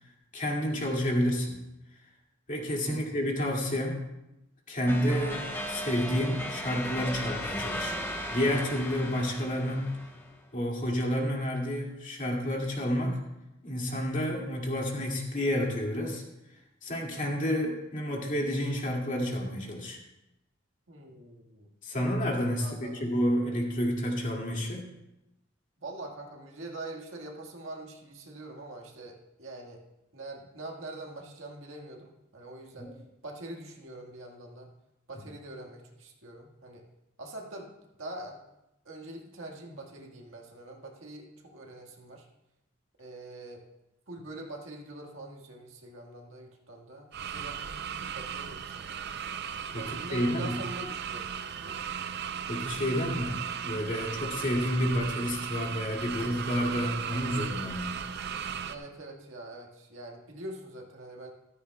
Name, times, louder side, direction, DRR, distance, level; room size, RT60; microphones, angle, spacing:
voice 1, 0.3-1.6 2.5-4.0 4.7-8.0 8.3-10.0 10.5-13.2 13.6-16.2 16.8-20.0 21.8-24.9 32.8-32.9 49.7-49.8 50.1-50.6 52.5-58.0, equal, 40° left, -1 dB, 2.3 m, -30 dB
sound 1, 4.9-10.3, equal, 10° left, 1.3 m, -36 dB
voice 2, 20.9-21.7 22.6-23.1 25.8-29.8 30.1-32.9 33.2-34.7 35.1-36.8 37.2-37.7 38.0-38.4 38.9-42.3 43.0-43.6 44.1-49.0 49.8-51.3 51.6-51.8 58.7-61.3, right 2 dB, 70° right, 0 dB, 1.7 m, -44 dB
sound 2, 47.1-58.8, right 8 dB, 55° right, 0.5 m, -36 dB
14.5 x 13.5 x 2.3 m, 0.93 s
head